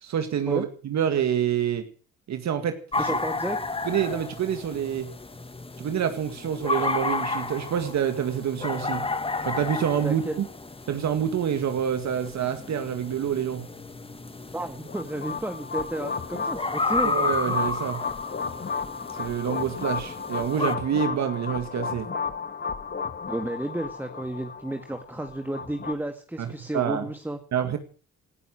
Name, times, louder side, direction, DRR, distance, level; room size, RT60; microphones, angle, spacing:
voice 1, 0.0-1.8 2.3-3.2 3.9-5.1 5.8-9.0 9.5-10.5 10.9-13.6 17.0-18.0 19.2-22.1 26.4-27.1 27.5-27.8, right 9 dB, 65° right, 8 dB, 2.1 m, -27 dB
sound 1, 2.9-20.8, left 3 dB, 20° left, 1.6 m, -32 dB
voice 2, 3.0-3.6 10.0-10.4 14.5-17.1 18.5-18.6 23.3-27.4, right 1 dB, 5° right, 7 dB, 1.8 m, -32 dB
sound 2, 14.6-25.9, left 5 dB, 35° left, 1.6 m, -33 dB
18.0 x 12.5 x 6.1 m, 0.40 s
cardioid pair, 90°, 30 cm